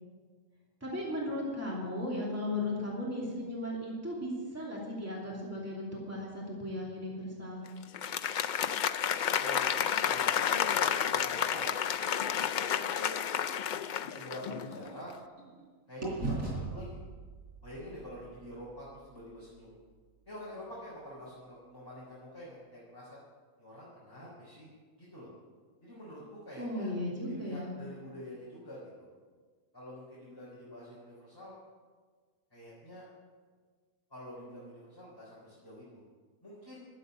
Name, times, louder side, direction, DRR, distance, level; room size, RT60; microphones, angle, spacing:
voice 1, 0.8-7.6 26.6-27.7, left 1 dB, 10° right, -5 dB, 2.9 m, -36 dB
Applause, 7.8-14.8, left 8 dB, 90° left, 0.4 m, -31 dB
voice 2, 9.4-11.8 12.5-13.2 14.0-15.1 15.9-17.0 17.6-19.7 20.3-23.2 23.6-24.7 25.0-25.3 25.8-26.9 27.3-29.1 29.7-31.6 32.5-33.0 34.1-36.0 36.4-36.9, equal, 15° left, -8 dB, 3.8 m, -47 dB
sound 1, 13.3-15.6 16.0-20.0, right 2 dB, 85° right, 4.5 m, -41 dB
12.5 x 8.2 x 8.0 m, 1.6 s
omnidirectional pair, 1.4 m